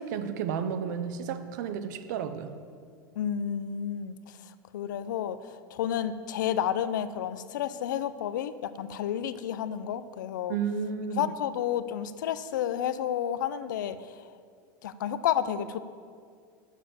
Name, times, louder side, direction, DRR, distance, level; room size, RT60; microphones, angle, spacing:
voice 1, 0.0-2.5 10.5-11.3, right 7 dB, 70° right, 10 dB, 0.8 m, -32 dB
voice 2, 3.2-4.2 4.7-10.6 11.1-14.0 14.8-15.8, left 10 dB, 80° left, 14 dB, 0.5 m, -31 dB
7.3 x 7.1 x 7.1 m, 2.1 s
hypercardioid pair, 100°, 10 cm